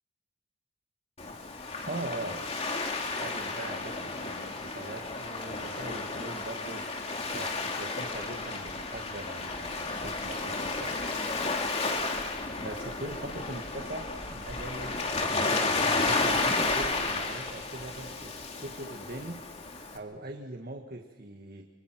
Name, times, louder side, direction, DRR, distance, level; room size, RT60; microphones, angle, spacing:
Waves surf, 1.2-20.0, left 3 dB, 35° left, 2.8 m, -32 dB
voice 1, 1.8-2.4 3.1-11.0 12.6-15.7 15.9-21.7, right 2 dB, 55° right, 3 dB, 1.7 m, -41 dB
25.5 x 25.5 x 6.0 m, 1.2 s
head